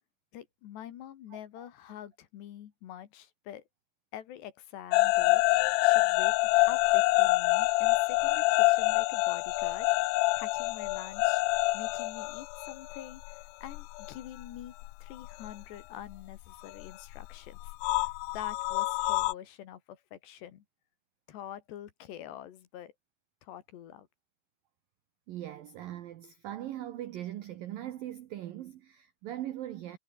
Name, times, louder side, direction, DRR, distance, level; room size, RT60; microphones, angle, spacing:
voice 1, 0.3-3.6 4.1-6.4 6.7-9.9 10.4-11.4 11.7-14.7 15.0-20.6 21.3-22.9 23.4-24.1, left 11 dB, 65° left, 3.7 m, -46 dB
sound 1, 4.9-14.1 14.4-15.6 16.8-19.3, left 22 dB, 85° left, 2.7 m, -26 dB
voice 2, 25.3-30.0, right 13 dB, 75° right, 2.1 m, -40 dB
omnidirectional pair, 5.6 m